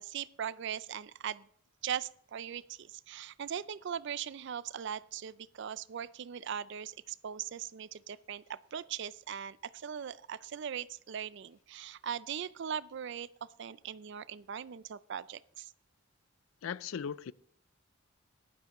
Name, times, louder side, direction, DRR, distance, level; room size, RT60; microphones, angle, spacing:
voice 1, 0.0-1.5 1.8-13.3 13.6-15.7, right 8 dB, 55° right, 0.4 m, -40 dB
voice 2, 16.6-17.3, left 7 dB, 70° left, 0.4 m, -38 dB
15.0 x 11.5 x 3.0 m
head